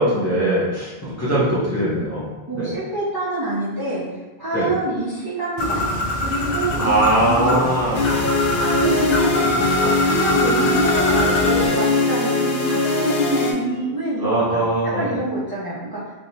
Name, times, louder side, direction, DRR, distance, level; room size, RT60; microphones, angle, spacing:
voice 1, 0.0-2.2 2.5-2.7 4.5-4.7 6.8-8.0 14.2-15.1, right 1 dB, 15° left, -9 dB, 0.7 m, -20 dB
voice 2, 2.5-4.0 4.4-5.8 6.2-7.7 8.6-14.6 14.9-16.1, right 2 dB, 25° right, -8 dB, 0.6 m, -26 dB
Bird, 5.6-11.7, left 1 dB, 50° left, 0.6 m, -25 dB
sound 1, 7.9-13.5, left 3 dB, 75° left, 0.8 m, -20 dB
3.4 x 2.8 x 2.7 m, 1.2 s
omnidirectional pair, 1.1 m